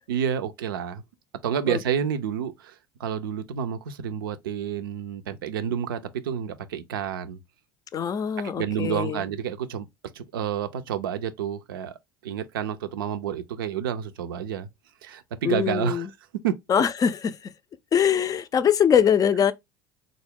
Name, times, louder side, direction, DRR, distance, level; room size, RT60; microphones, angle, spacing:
voice 1, 0.1-1.0 1.4-2.7 3.0-7.4 8.6-9.9 10.1-12.0 12.2-14.7 15.0-16.1 16.4-16.5, right 8 dB, 80° right, 0.5 m, -29 dB
voice 2, 7.9-9.2 15.4-16.1 16.7-17.4 17.9-19.5, left 8 dB, 30° left, 0.4 m, -22 dB
3.5 x 2.0 x 3.5 m
hypercardioid pair, 70°, 11 cm